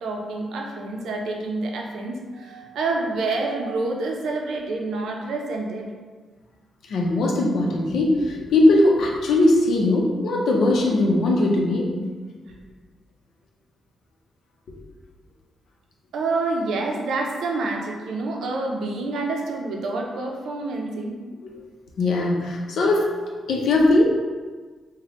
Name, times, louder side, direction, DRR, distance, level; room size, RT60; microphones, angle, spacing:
voice 1, 0.0-5.9 16.1-21.1, right 3 dB, 85° right, 1 dB, 0.5 m, -27 dB
voice 2, 6.9-11.9 21.4-21.5 22.0-23.1 23.5-24.0, left 2 dB, 70° left, -1 dB, 0.6 m, -19 dB
3.4 x 2.1 x 3.7 m, 1.4 s
wide cardioid pair, 165°, 0 cm